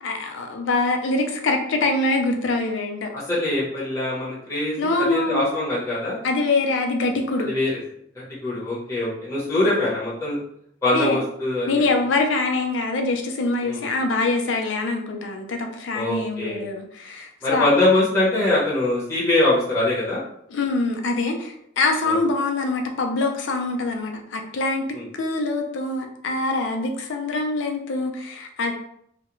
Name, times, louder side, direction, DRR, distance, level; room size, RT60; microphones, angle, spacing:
voice 1, 0.0-3.1 4.8-5.6 6.2-7.5 10.9-11.2 11.7-17.7 20.5-24.9 25.1-28.7, left 3 dB, 70° left, 4 dB, 0.4 m, -24 dB
voice 2, 3.1-6.2 7.4-7.8 8.4-10.4 10.8-11.7 13.6-13.8 15.9-16.6 17.4-20.2 22.1-22.2 24.9-25.0, left 2 dB, 15° left, -8 dB, 0.8 m, -23 dB
2.3 x 2.1 x 2.9 m, 0.70 s
head